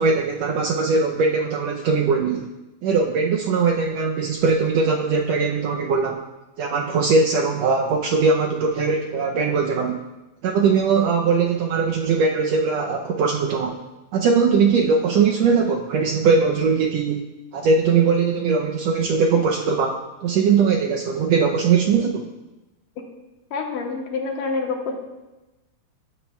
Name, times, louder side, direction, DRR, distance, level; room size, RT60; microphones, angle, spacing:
voice 1, 0.0-2.5 2.8-6.2 6.6-10.0 10.4-13.8 14.1-17.2 17.5-22.3, right 5 dB, 80° right, 1 dB, 1.5 m, -20 dB
voice 2, 23.5-24.9, left 4 dB, 90° left, 2 dB, 2.6 m, -27 dB
15.0 x 8.6 x 2.2 m, 1.0 s
omnidirectional pair, 3.6 m